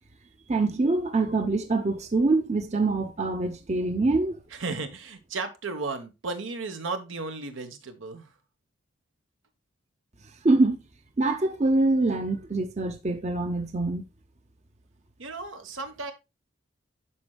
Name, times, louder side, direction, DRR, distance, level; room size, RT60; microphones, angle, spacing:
voice 1, 0.5-4.4 10.4-10.8 11.2-14.0, right 2 dB, 35° right, 0.6 m, -24 dB
voice 2, 4.5-8.3 15.2-16.1, right 3 dB, 85° right, 1.1 m, -34 dB
11.5 x 4.4 x 2.3 m
head